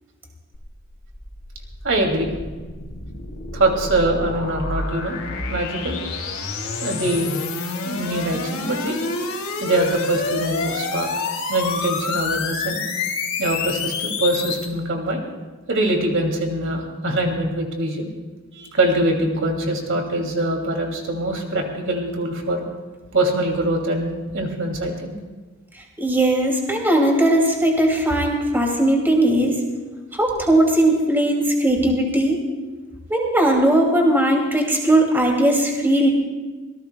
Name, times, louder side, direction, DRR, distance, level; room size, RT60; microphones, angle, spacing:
sound 1, 0.5-14.7, left 4 dB, 85° left, 2.9 m, -28 dB
voice 1, 1.8-2.3 3.5-5.2 5.5-6.0 6.8-7.3 7.8-9.0 9.6-11.1 11.5-12.8 13.4-15.2 15.7-18.1 18.5-22.6 23.1-25.1, right 1 dB, 65° right, 2 dB, 2.6 m, -23 dB
voice 2, 26.0-29.6 30.1-32.4 33.1-36.1, right 1 dB, 10° right, -1 dB, 2.5 m, -18 dB
25.5 x 18.5 x 2.3 m, 1.3 s
head